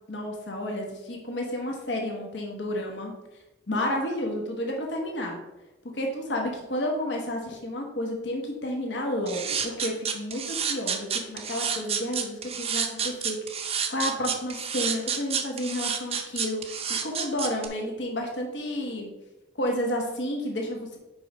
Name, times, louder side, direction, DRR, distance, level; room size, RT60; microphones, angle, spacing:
voice 1, 0.1-3.1 3.7-5.4 5.9-13.4 13.6-19.1 19.6-21.0, left 1 dB, 75° left, 1 dB, 1.1 m, -31 dB
sound 1, 9.3-17.7, right 7 dB, 35° right, 0.6 m, -29 dB
5.4 x 5.0 x 4.1 m, 1.0 s
head